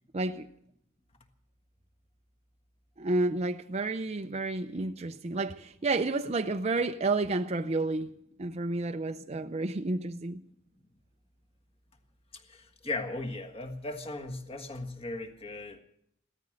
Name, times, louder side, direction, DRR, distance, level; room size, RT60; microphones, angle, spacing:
voice 1, 0.1-0.5 3.0-8.1 8.4-10.4, right 2 dB, 30° right, 0.5 m, -30 dB
voice 2, 12.3-15.8, left 2 dB, 30° left, 1.5 m, -37 dB
16.5 x 13.5 x 6.4 m
head